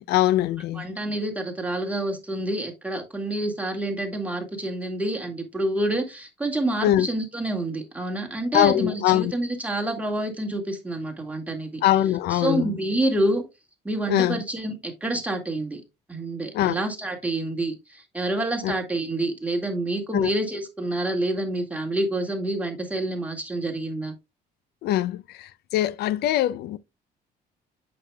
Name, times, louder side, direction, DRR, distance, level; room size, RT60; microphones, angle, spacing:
voice 1, 0.0-0.9 6.8-7.1 8.5-9.3 11.8-12.7 14.1-14.4 16.5-16.8 18.6-18.7 20.1-20.3 24.8-26.8, left 13 dB, 70° left, 0.4 m, -22 dB
voice 2, 0.8-11.8 12.3-13.4 13.8-15.8 16.1-24.1, right 1 dB, 10° right, 1.9 m, -28 dB
8.3 x 6.6 x 2.2 m
cardioid pair, 110°, 17 cm